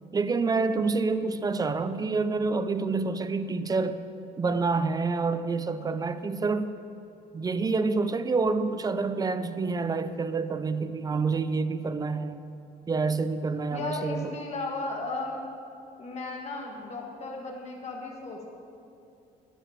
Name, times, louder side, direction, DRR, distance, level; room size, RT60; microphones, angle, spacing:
voice 1, 0.1-4.0 4.4-6.7 7.3-12.5 12.9-14.3, right 4 dB, 20° right, 12 dB, 0.5 m, -27 dB
voice 2, 13.7-15.4 16.0-18.5, left 3 dB, 40° left, 0 dB, 2.1 m, -35 dB
10.0 x 6.9 x 7.0 m, 2.6 s
cardioid pair, 110°, 17 cm